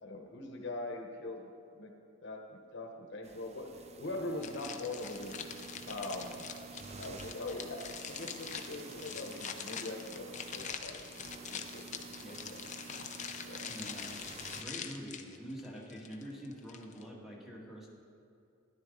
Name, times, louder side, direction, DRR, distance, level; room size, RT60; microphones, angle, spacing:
voice 1, 0.0-1.5 1.8-1.9 2.2-3.7 4.0-5.5 5.9-6.5 7.0-11.2 11.5-12.6 13.4-13.7, left 2 dB, 60° left, 2 dB, 1.2 m, -42 dB
sound 1, 3.2-14.6, right 4 dB, 30° right, 0.6 m, -50 dB
sound 2, 4.4-17.1, left 7 dB, 35° left, 0.6 m, -44 dB
voice 2, 13.6-14.1 14.5-17.9, equal, ahead, -3 dB, 1.7 m, -45 dB
12.5 x 11.0 x 3.9 m, 2.6 s
head